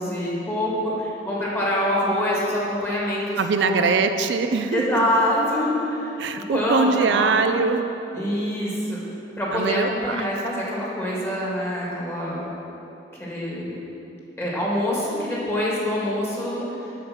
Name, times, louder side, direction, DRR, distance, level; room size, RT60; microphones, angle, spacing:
voice 1, 0.0-3.9 4.7-6.1 6.5-7.4 8.1-9.0 9.4-12.5 13.2-13.8 14.4-16.6, left 1 dB, 15° left, -5 dB, 1.7 m, -25 dB
voice 2, 3.4-5.0 6.2-7.8 9.5-10.3, right 4 dB, 85° right, 8 dB, 0.4 m, -22 dB
7.7 x 5.0 x 6.2 m, 3.0 s
head